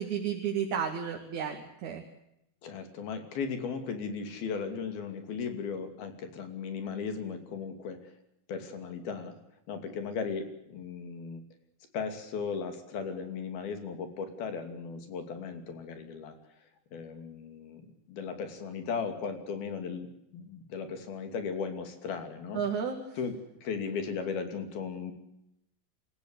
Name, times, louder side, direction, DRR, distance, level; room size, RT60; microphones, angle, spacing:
voice 1, 0.0-2.0 22.5-23.0, right 7 dB, 55° right, 3 dB, 3.3 m, -32 dB
voice 2, 2.6-8.0 8.5-9.3 9.7-11.4 11.9-16.3 16.9-17.8 18.1-22.6 23.2-23.3 23.6-25.1, left 5 dB, 80° left, 7 dB, 4.6 m, -36 dB
27.5 x 15.5 x 8.2 m, 0.81 s
omnidirectional pair, 4.3 m